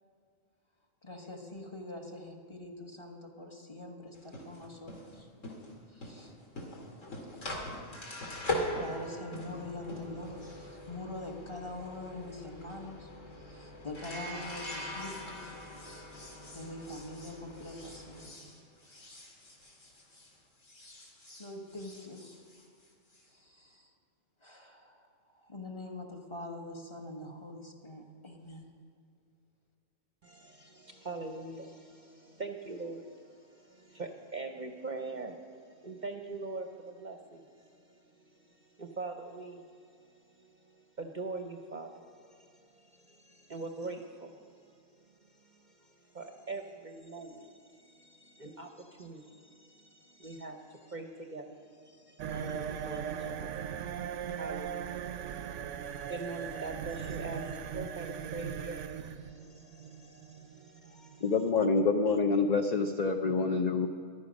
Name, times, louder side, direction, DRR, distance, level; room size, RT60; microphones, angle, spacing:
voice 1, 1.0-5.3 5.9-6.3 8.8-13.1 13.4-15.6 16.5-18.4 18.8-19.2 21.4-22.3 23.3-23.9 24.4-25.1 25.3-28.7, left 2 dB, 20° left, 1 dB, 1.4 m, -44 dB
sound 1, 4.1-20.3 20.6-23.2, left 1 dB, 70° left, 2.6 m, -42 dB
voice 2, 30.2-61.5 62.1-62.2, right 3 dB, 40° right, 4 dB, 0.8 m, -44 dB
sound 2, 52.2-61.8, right 8 dB, 70° right, 0.9 m, -39 dB
voice 3, 61.2-63.9, left 4 dB, 50° left, 5 dB, 0.5 m, -27 dB
14.5 x 12.0 x 5.2 m, 2.3 s
omnidirectional pair, 1.4 m